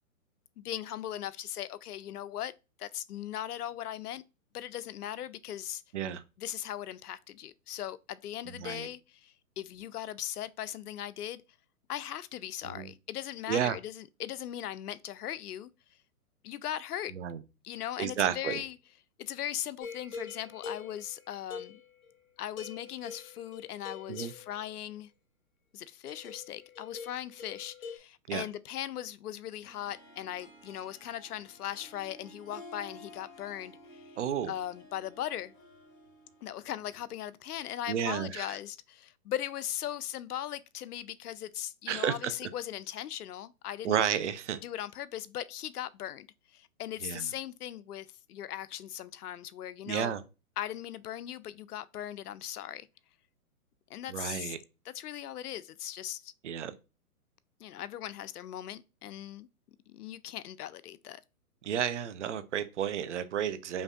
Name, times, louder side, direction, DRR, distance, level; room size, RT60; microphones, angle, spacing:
voice 1, 0.6-2.5 2.8-4.2 4.5-5.8 6.4-11.4 11.9-15.7 16.4-17.1 17.6-18.7 19.2-21.8 22.4-25.1 25.7-34.2 34.5-35.5 36.4-44.0 44.6-46.3 46.5-50.1 50.6-52.9 53.9-54.5 54.9-56.3 57.6-59.5 59.9-61.2, left 11 dB, 80° left, 0.6 m, -39 dB
voice 2, 8.5-8.9 12.6-12.9 13.5-13.8 17.1-17.4 18.0-18.6 24.1-24.3 28.3-28.4 34.2-34.5 37.9-38.6 41.9-42.1 43.8-44.6 47.0-47.3 49.9-50.2 54.1-54.6 56.4-56.7 61.6-63.8, right 9 dB, 50° right, 0.6 m, -32 dB
sound 1, 19.8-22.2 22.6-24.8 26.1-28.0, left 5 dB, 60° left, 2.0 m, -45 dB
Harp, 29.6-37.3, left 1 dB, 30° left, 1.3 m, -53 dB
5.4 x 2.6 x 2.4 m
hypercardioid pair, 155°, 45 cm